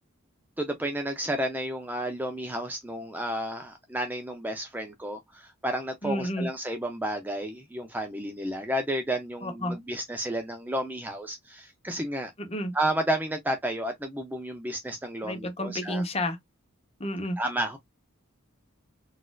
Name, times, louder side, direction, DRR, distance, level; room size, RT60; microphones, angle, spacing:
voice 1, 0.6-12.3 12.7-16.0 17.4-17.8, right 1 dB, 10° right, 0.4 m, -31 dB
voice 2, 6.0-6.5 9.4-9.8 12.4-12.7 15.3-16.4 17.0-17.4, equal, 30° left, 0.7 m, -30 dB
4.1 x 2.4 x 2.2 m
head